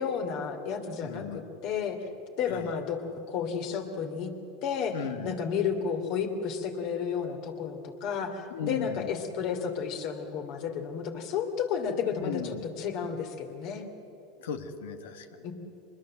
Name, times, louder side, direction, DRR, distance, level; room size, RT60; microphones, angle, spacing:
voice 1, 0.0-2.1 2.4-4.3 4.6-5.0 5.2-13.8 15.4-15.5, left 6 dB, 60° left, 6 dB, 2.9 m, -32 dB
voice 2, 1.0-1.4 2.5-2.7 4.9-5.4 8.5-9.1 12.2-12.7 14.4-15.5, left 7 dB, 85° left, 8 dB, 1.7 m, -36 dB
24.5 x 21.0 x 7.8 m, 2.9 s
supercardioid pair, 110°, 0 cm